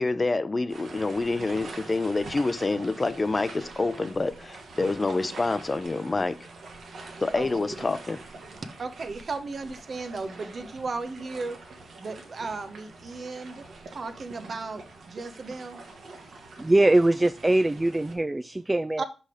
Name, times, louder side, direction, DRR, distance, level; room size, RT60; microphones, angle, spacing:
voice 1, 0.0-6.5 7.2-8.2, left 3 dB, 30° left, 0.6 m, -27 dB
sound 1, 0.7-18.2, right 3 dB, 75° right, 1.5 m, -44 dB
voice 2, 8.8-11.6 12.0-14.8 15.1-15.8 19.0-19.1, right 3 dB, 55° right, 0.9 m, -35 dB
voice 3, 16.6-19.0, right 2 dB, 20° right, 0.3 m, -22 dB
5.5 x 5.1 x 4.9 m
cardioid pair, 70°, 0 cm